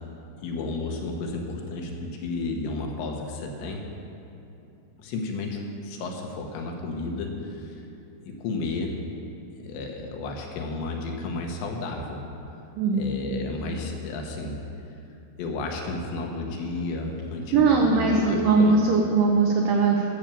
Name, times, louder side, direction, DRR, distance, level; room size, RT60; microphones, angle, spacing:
voice 1, 0.4-3.8 5.0-7.9 8.2-9.0 9.6-12.2 12.9-14.6 15.4-18.8, left 3 dB, 80° left, 1 dB, 3.4 m, -32 dB
voice 2, 12.8-13.1 17.5-20.1, right 4 dB, 85° right, 0 dB, 1.9 m, -20 dB
13.5 x 7.1 x 6.9 m, 2.8 s
omnidirectional pair, 5.1 m